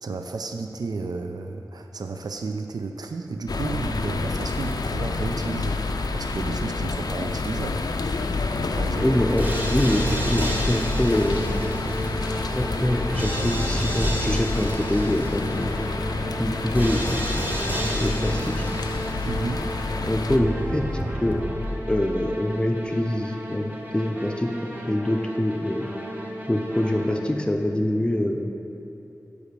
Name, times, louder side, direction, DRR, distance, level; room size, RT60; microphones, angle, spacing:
voice 1, 0.0-8.0 8.6-9.1 19.2-19.7, right 3 dB, 75° right, 5 dB, 0.4 m, -32 dB
sound 1, 3.5-20.4, left 3 dB, 75° left, 0.4 m, -29 dB
sound 2, 8.9-27.4, equal, 25° right, 1.1 m, -30 dB
voice 2, 9.0-11.5 12.5-15.7 16.4-17.0 17.9-18.7 20.0-20.8 21.2-21.4 21.9-24.5 24.9-25.9 26.5-28.5, left 1 dB, 15° left, 2 dB, 0.5 m, -25 dB
8.1 x 4.9 x 6.7 m, 2.9 s
wide cardioid pair, 75°, 7 cm